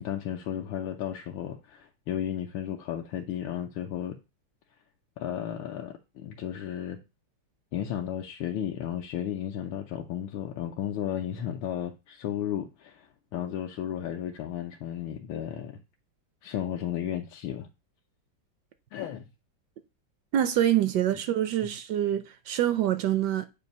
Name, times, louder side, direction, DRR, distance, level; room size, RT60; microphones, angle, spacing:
voice 1, 0.0-4.2 5.2-7.0 7.7-15.8 16.4-17.7 18.9-19.3 21.6-21.7, left 10 dB, 85° left, 1.5 m, -34 dB
voice 2, 20.3-23.5, right 11 dB, 70° right, 1.0 m, -25 dB
7.9 x 2.7 x 5.2 m
omnidirectional pair, 2.2 m